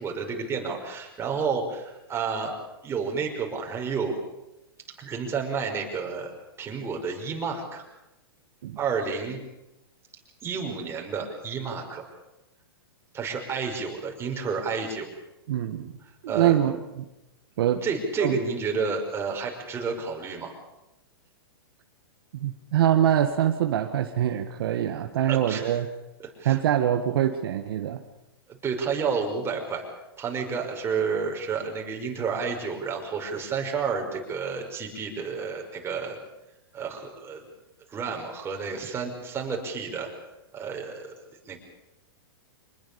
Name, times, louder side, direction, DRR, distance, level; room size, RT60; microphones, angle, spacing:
voice 1, 0.0-2.6 2.8-4.2 5.0-6.3 6.6-7.8 8.8-9.4 10.4-12.1 13.1-15.1 16.3-16.5 17.8-20.5 25.3-25.8 26.2-26.6 28.5-29.9 30.2-36.2 36.7-37.4 37.9-40.1 40.5-41.1 41.5-41.6, right 5 dB, 20° right, 2 dB, 5.5 m, -30 dB
voice 2, 15.5-15.9 16.2-17.1 17.6-17.8 18.2-18.4 22.3-25.9 26.4-28.0, right 11 dB, 65° right, 6 dB, 1.7 m, -24 dB
26.0 x 20.5 x 7.0 m, 0.95 s
hypercardioid pair, 130°, 13 cm